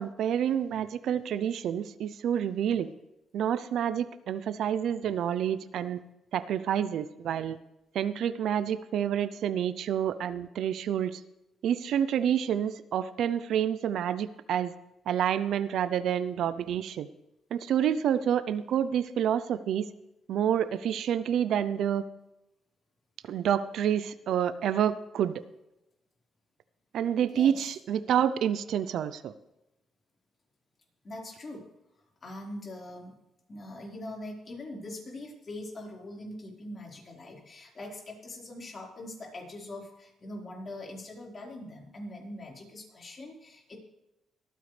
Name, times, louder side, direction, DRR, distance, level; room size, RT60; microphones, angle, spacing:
voice 1, 0.0-2.9 3.3-6.0 6.3-7.6 7.9-11.2 11.6-14.7 15.1-17.1 17.5-19.9 20.3-22.0 23.3-25.4 26.9-29.3, right 9 dB, 75° right, 14 dB, 0.6 m, -28 dB
voice 2, 31.0-31.6 32.2-33.2 33.5-43.8, left 1 dB, 40° left, -1 dB, 4.5 m, -42 dB
23.5 x 9.3 x 3.4 m, 0.91 s
cardioid pair, 90°, 0 cm